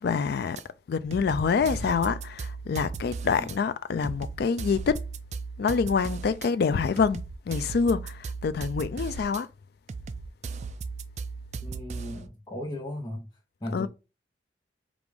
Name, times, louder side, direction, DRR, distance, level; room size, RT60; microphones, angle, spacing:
voice 1, 0.0-0.6 0.9-5.0 5.6-9.5 13.7-13.9, left 5 dB, 55° left, 0.3 m, -26 dB
sound 1, 0.6-0.7 1.1-3.6 4.0-6.5 7.0-9.4 9.9-12.3, right 4 dB, 35° right, 0.3 m, -37 dB
voice 2, 11.6-13.3 13.6-13.9, left 1 dB, 20° left, 0.8 m, -36 dB
4.9 x 2.5 x 3.5 m
head